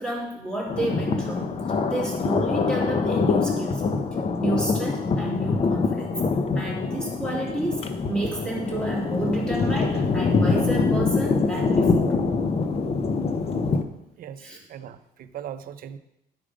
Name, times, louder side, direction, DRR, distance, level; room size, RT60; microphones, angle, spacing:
voice 1, 0.0-1.6 1.9-3.8 4.4-6.2 6.5-12.3 14.4-14.6, right 1 dB, 5° left, -3 dB, 3.0 m, -30 dB
Thunder, 0.7-13.8, left 4 dB, 35° left, 0.8 m, -24 dB
voice 2, 14.2-16.0, right 9 dB, 60° right, 11 dB, 0.6 m, -39 dB
11.5 x 4.9 x 5.0 m, 0.85 s
cardioid pair, 110°, 17 cm